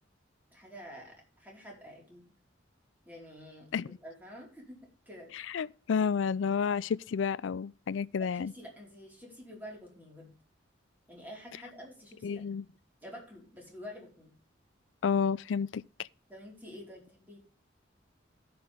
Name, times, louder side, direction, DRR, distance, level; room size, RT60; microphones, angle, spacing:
voice 1, 0.5-2.3 3.1-3.7 4.0-5.3 8.2-10.3 11.1-12.4 13.0-14.3 16.3-17.4, equal, 10° right, 4.5 m, -48 dB
voice 2, 5.3-8.5 12.2-12.6 15.0-15.8, left 6 dB, 75° left, 0.4 m, -30 dB
17.0 x 6.1 x 3.5 m
head